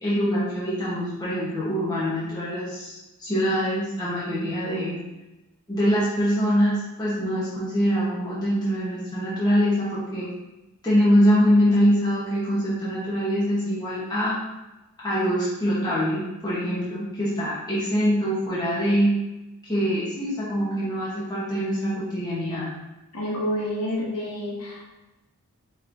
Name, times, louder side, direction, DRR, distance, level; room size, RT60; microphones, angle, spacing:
voice 1, 0.0-5.0 5.7-10.3 10.8-14.4 15.0-19.1 19.6-22.7, equal, 20° left, -9 dB, 0.9 m, -24 dB
voice 2, 23.1-24.9, equal, 85° left, -4 dB, 1.1 m, -28 dB
5.5 x 3.0 x 2.6 m, 1.0 s
head